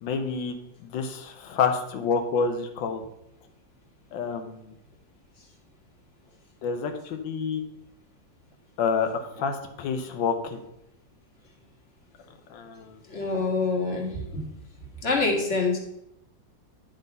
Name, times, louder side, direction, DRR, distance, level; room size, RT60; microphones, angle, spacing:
voice 1, 0.0-0.6 0.8-3.0 4.1-4.7 6.6-7.6 8.8-10.6 12.5-13.0, left 5 dB, 90° left, 6 dB, 1.5 m, -28 dB
voice 2, 13.1-14.4 15.0-15.8, left 3 dB, 40° left, 0 dB, 1.8 m, -26 dB
10.5 x 3.8 x 5.3 m, 0.81 s
omnidirectional pair, 2.0 m